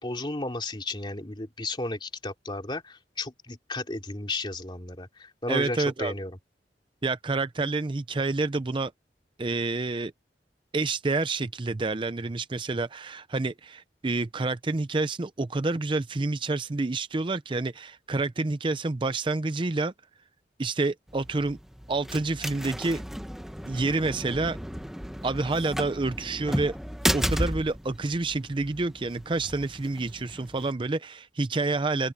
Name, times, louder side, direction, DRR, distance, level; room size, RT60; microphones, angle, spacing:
voice 1, 0.0-6.4, left 2 dB, 25° left, 2.8 m, -34 dB
voice 2, 5.5-6.1 7.0-8.9 9.4-10.1 10.7-19.9 20.6-21.6 21.9-23.0 23.7-24.6 25.2-26.8 27.1-32.1, right 3 dB, 30° right, 0.5 m, -28 dB
sound 1, 21.1-30.7, equal, ahead, 1.0 m, -34 dB
open air
head